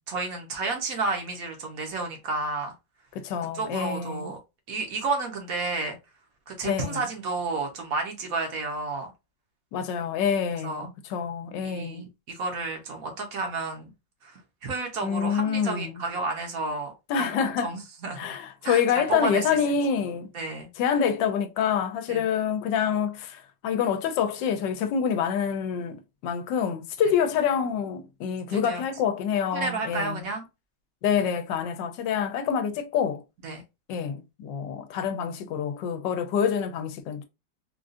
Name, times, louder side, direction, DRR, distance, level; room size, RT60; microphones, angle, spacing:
voice 1, 0.1-2.7 3.5-4.4 4.7-6.0 6.5-9.1 10.6-10.9 11.6-13.9 14.2-16.9 17.2-18.4 18.6-18.8 19.1-19.4 20.3-20.7 22.1-22.2 28.5-28.8 29.5-30.4 33.4-33.6, right 3 dB, 55° right, 1.2 m, -31 dB
voice 2, 3.1-4.3 6.6-7.0 9.7-12.1 15.0-16.0 17.1-17.7 18.2-20.3 20.8-30.2 31.0-33.2 33.9-37.2, left 7 dB, 80° left, 1.2 m, -27 dB
3.8 x 2.4 x 2.5 m
omnidirectional pair, 2.0 m